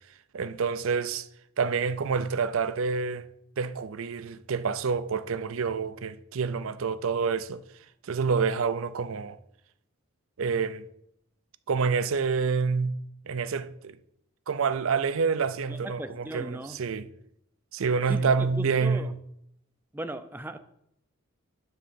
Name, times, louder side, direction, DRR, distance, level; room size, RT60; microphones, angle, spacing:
voice 1, 0.3-1.3 1.6-3.3 3.6-7.6 8.0-9.4 10.4-10.8 11.7-13.0 13.3-14.0 14.5-17.1 17.7-19.2, right 5 dB, 70° right, 0.5 m, -27 dB
voice 2, 15.7-16.8 18.1-18.2 18.6-19.1 19.9-20.6, right 1 dB, 10° right, 0.4 m, -37 dB
9.7 x 3.8 x 6.9 m
head